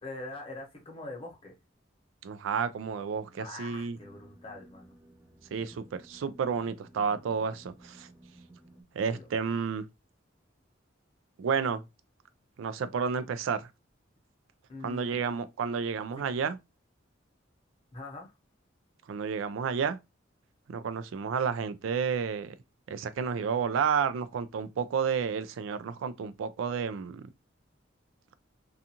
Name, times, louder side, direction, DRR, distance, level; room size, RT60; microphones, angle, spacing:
voice 1, 0.0-1.5 3.3-4.9 9.1-9.3 14.7-15.2 16.1-16.2 17.9-18.3, left 2 dB, 30° left, 0.9 m, -43 dB
voice 2, 2.2-4.0 5.5-8.1 8.9-9.9 11.4-11.8 12.6-13.7 14.8-16.6 19.1-20.0 20.7-22.5 22.9-27.2, right 6 dB, 80° right, 0.3 m, -31 dB
sound 1, 3.8-8.8, right 1 dB, 10° right, 0.5 m, -56 dB
2.5 x 2.4 x 2.7 m
head